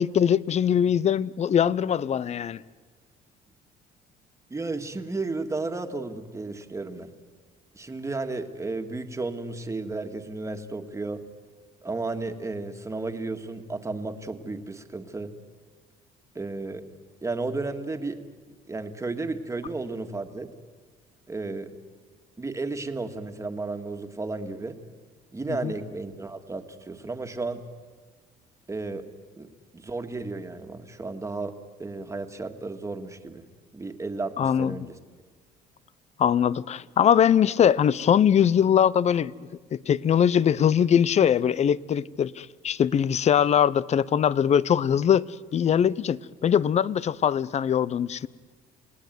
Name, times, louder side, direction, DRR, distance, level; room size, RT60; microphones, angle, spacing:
voice 1, 0.0-2.6 25.6-25.7 34.4-34.8 36.2-39.3 39.7-48.3, left 8 dB, 40° left, 0.7 m, -22 dB
voice 2, 4.5-7.1 7.8-11.2 11.8-15.3 16.4-16.8 17.2-18.2 18.7-20.5 21.3-21.7 22.4-24.8 25.3-27.6 28.7-29.0 29.4-31.5 31.8-33.4 33.7-35.0, right 3 dB, 15° right, 1.9 m, -33 dB
28.5 x 18.5 x 9.5 m
cardioid pair, 110°, 17 cm